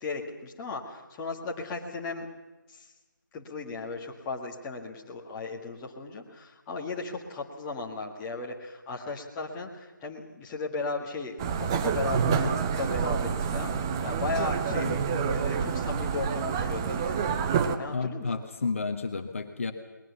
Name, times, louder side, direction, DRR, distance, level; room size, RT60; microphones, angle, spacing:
voice 1, 0.0-2.3 2.7-2.9 3.3-14.9 15.3-17.2 17.8-18.3, left 3 dB, 10° left, -2 dB, 1.8 m, -36 dB
sound 1, 11.4-17.8, right 6 dB, 10° right, 0.6 m, -28 dB
voice 2, 17.9-19.7, left 4 dB, 40° left, 6 dB, 1.4 m, -31 dB
21.0 x 20.5 x 7.0 m, 1.1 s
figure-of-eight pair, 155°, 11 cm